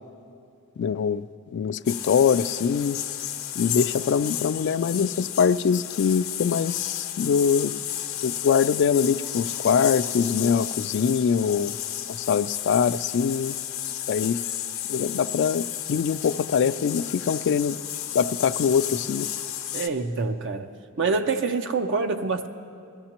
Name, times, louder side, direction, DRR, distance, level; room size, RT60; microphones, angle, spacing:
voice 1, 0.8-1.2 1.5-3.0 3.6-7.7 8.2-11.8 12.1-13.6 14.1-14.4 14.9-17.8 18.1-19.3, left 6 dB, 55° left, 15 dB, 0.3 m, -23 dB
sound 1, 1.9-19.9, left 11 dB, 75° left, 0.7 m, -32 dB
voice 2, 19.7-20.7 21.0-22.5, right 4 dB, 60° right, 6 dB, 0.5 m, -26 dB
21.0 x 14.5 x 2.9 m, 2.4 s
head